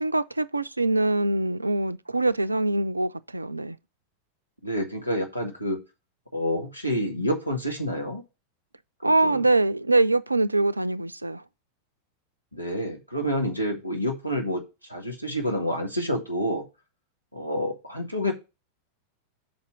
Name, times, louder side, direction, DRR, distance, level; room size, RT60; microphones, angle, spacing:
voice 1, 0.0-3.8 9.0-11.4, right 2 dB, 85° right, 0.3 m, -24 dB
voice 2, 4.6-5.8 6.3-8.2 9.0-9.4 12.5-14.6 14.9-16.6 17.3-18.3, equal, 90° left, 1.4 m, -28 dB
6.1 x 4.2 x 6.1 m
figure-of-eight pair, 90°, 0 cm